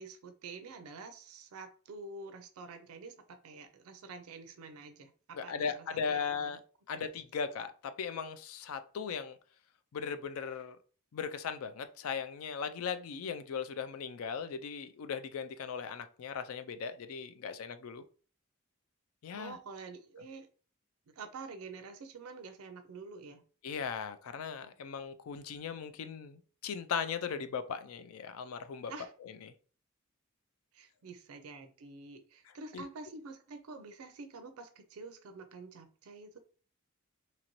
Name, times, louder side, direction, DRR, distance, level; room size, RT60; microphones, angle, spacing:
voice 1, 0.0-6.5 19.3-20.5 21.1-23.4 28.9-29.1 30.7-36.4, right 4 dB, 85° right, 0.4 m, -48 dB
voice 2, 5.3-6.6 6.9-9.4 9.9-10.8 11.1-18.0 19.2-19.6 23.6-28.9 29.4-29.5 32.7-32.8, left 6 dB, 80° left, 0.4 m, -38 dB
2.9 x 2.6 x 2.9 m
head